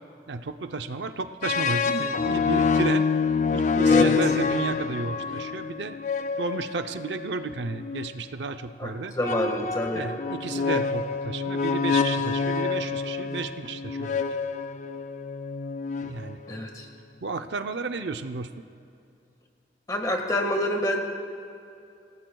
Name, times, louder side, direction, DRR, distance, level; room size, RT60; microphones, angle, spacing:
voice 1, 0.3-3.1 3.5-5.9 6.4-9.1 9.9-14.2 16.0-16.4 17.2-18.5, right 4 dB, 80° right, 8 dB, 0.6 m, -32 dB
sound 1, 1.4-8.1 9.2-16.6, left 5 dB, 40° left, 0.4 m, -27 dB
voice 2, 8.8-10.0 16.5-16.9 19.9-21.0, left 1 dB, 20° left, 2 dB, 1.6 m, -27 dB
26.0 x 18.0 x 2.3 m, 2.6 s
head